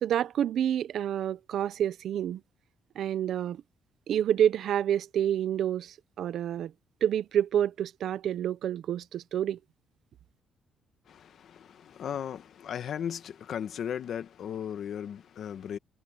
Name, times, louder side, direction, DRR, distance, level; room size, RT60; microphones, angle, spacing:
voice 1, 0.0-2.4 3.0-3.6 4.1-6.7 7.0-9.6, right 10 dB, 60° right, 0.7 m, -28 dB
voice 2, 11.0-15.8, left 8 dB, 50° left, 1.5 m, -36 dB
cardioid pair, 165°, 0 cm